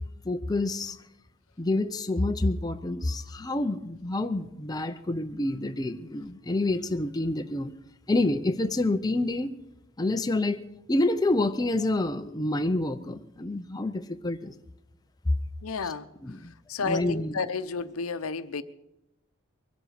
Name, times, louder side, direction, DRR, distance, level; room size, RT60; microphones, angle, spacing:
voice 1, 0.2-1.0 1.6-7.7 8.1-9.5 10.0-10.6 10.9-14.5 15.3-15.4 15.8-15.9 16.2-16.5 16.8-17.3, left 2 dB, 20° left, 0.6 m, -28 dB
voice 2, 15.6-16.1 16.7-18.6, left 4 dB, 80° left, 0.7 m, -31 dB
22.5 x 7.9 x 6.4 m
head